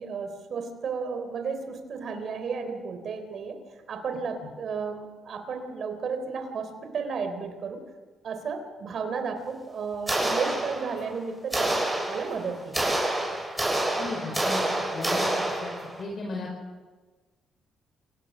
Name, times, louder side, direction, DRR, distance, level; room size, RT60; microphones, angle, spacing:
voice 1, 0.0-3.6 3.9-7.8 8.2-11.8 12.1-12.8, right 5 dB, 60° right, 6 dB, 3.7 m, -33 dB
sound 1, 10.1-11.1 11.5-16.0, right 1 dB, 10° right, 7.4 m, -28 dB
voice 2, 13.9-14.6 14.9-15.3 15.6-15.7 16.0-16.5, left 3 dB, 50° left, 0 dB, 5.0 m, -34 dB
27.5 x 18.0 x 6.4 m, 1.3 s
cardioid pair, 90°, 0 cm